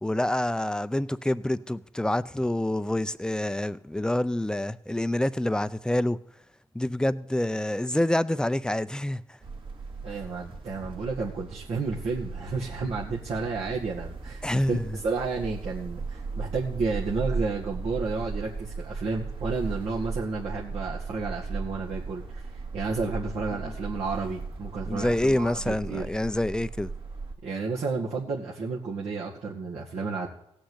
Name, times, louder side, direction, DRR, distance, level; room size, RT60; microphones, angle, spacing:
voice 1, 0.0-6.2 6.7-9.2 14.4-14.8 23.6-23.7 24.9-26.9, left 1 dB, 5° left, 0.6 m, -27 dB
sound 1, 9.4-27.3, right 4 dB, 50° right, 2.1 m, -37 dB
voice 2, 10.0-22.5 22.7-26.1 27.4-30.3, right 4 dB, 70° right, 2.0 m, -31 dB
16.5 x 6.5 x 8.1 m
cardioid pair, 75°, 11 cm